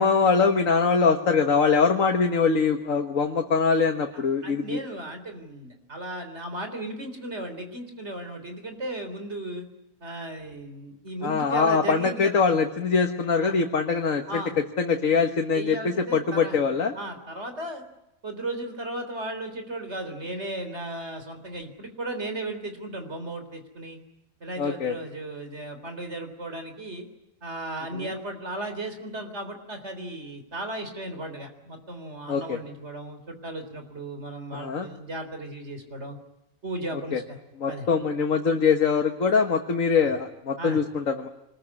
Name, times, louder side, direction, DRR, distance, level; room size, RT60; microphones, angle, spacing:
voice 1, 0.0-4.8 11.2-14.4 14.8-16.9 24.6-25.0 28.0-28.1 32.3-32.6 34.5-34.9 37.1-37.2 37.6-41.3, left 5 dB, 75° left, 4 dB, 1.9 m, -23 dB
voice 2, 4.1-9.7 10.0-12.4 13.3-13.6 14.3-14.6 15.5-16.6 16.9-17.8 18.2-24.0 24.4-27.1 27.4-36.2 36.6-37.4 37.7-37.9 40.0-40.1 40.6-40.8, right 1 dB, 55° right, 7 dB, 4.0 m, -35 dB
25.0 x 21.0 x 9.8 m, 0.88 s
omnidirectional pair, 1.4 m